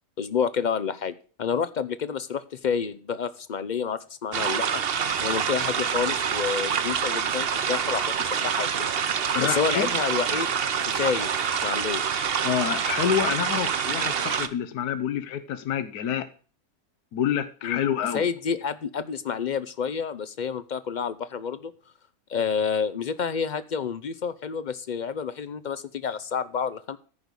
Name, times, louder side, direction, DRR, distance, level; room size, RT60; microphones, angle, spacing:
voice 1, 0.2-1.1 1.4-4.8 5.2-8.9 9.4-10.5 10.8-12.0 17.6-17.8 18.1-21.7 22.3-27.0, left 6 dB, 70° left, 0.4 m, -29 dB
sound 1, 4.3-14.5, right 7 dB, 50° right, 0.8 m, -26 dB
voice 2, 9.3-9.9 12.4-16.3 17.1-18.2, left 9 dB, 85° left, 1.4 m, -27 dB
14.5 x 5.3 x 6.3 m
omnidirectional pair, 1.6 m